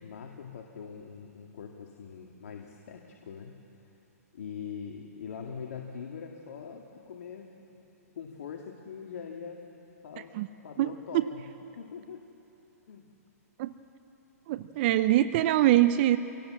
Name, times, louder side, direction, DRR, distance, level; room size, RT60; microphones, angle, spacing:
voice 1, 0.0-3.9 4.3-7.8 8.2-9.6 10.0-10.3 10.6-11.5 11.8-12.2 12.9-13.1, left 6 dB, 65° left, 1 dB, 2.0 m, -43 dB
voice 2, 10.8-11.2 13.6-13.7 14.5-16.2, right 14 dB, 40° right, 12 dB, 0.6 m, -24 dB
25.5 x 18.5 x 7.7 m, 2.9 s
hypercardioid pair, 135°, 9 cm